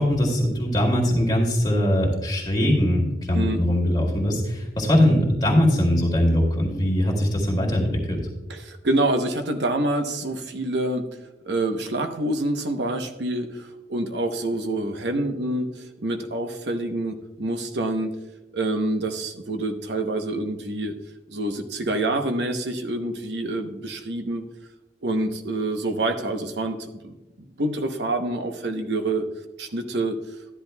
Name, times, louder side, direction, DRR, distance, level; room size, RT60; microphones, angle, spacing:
voice 1, 0.0-8.3, left 1 dB, 25° left, -1 dB, 2.2 m, -21 dB
voice 2, 8.5-11.1 11.4-18.2 18.5-20.9 21.3-24.4 25.0-27.1 27.6-29.2 29.6-30.2, right 2 dB, 80° right, 6 dB, 0.9 m, -27 dB
12.5 x 10.5 x 2.3 m, 0.99 s
head